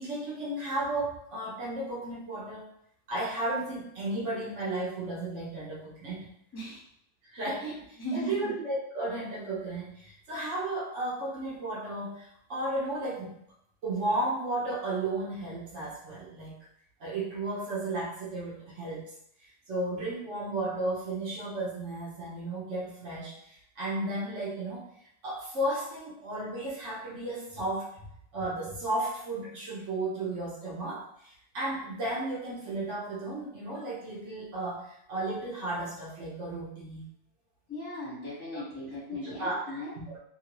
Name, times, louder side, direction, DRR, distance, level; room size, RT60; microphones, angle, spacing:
voice 1, 0.0-2.7 3.1-6.2 7.3-13.4 13.8-16.5 17.0-19.1 19.7-24.9 25.2-27.9 28.3-37.0 38.5-38.6 39.2-40.2, right 2 dB, 55° right, -5 dB, 0.8 m, -34 dB
voice 2, 8.0-8.5 37.7-39.9, left 1 dB, 15° left, -6 dB, 0.8 m, -37 dB
2.9 x 2.6 x 2.9 m, 0.70 s
omnidirectional pair, 1.9 m